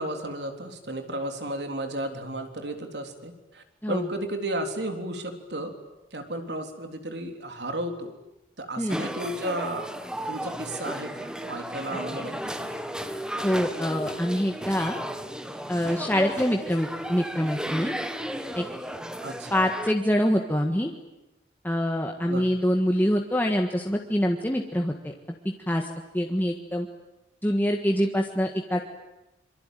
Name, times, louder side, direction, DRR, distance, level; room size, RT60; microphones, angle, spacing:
voice 1, 0.0-5.7 6.1-8.1 8.6-9.9 10.3-12.7 19.2-19.6 22.3-22.5, right 1 dB, 70° right, 5 dB, 3.7 m, -33 dB
sound 1, 8.9-19.9, equal, 5° right, 1.5 m, -34 dB
voice 2, 13.4-15.0 15.7-17.9 18.5-18.7 19.5-20.9 21.6-24.9 25.7-25.8 26.1-26.9 27.4-28.8, equal, 10° left, 2 dB, 1.6 m, -25 dB
26.5 x 24.5 x 9.3 m, 0.94 s
head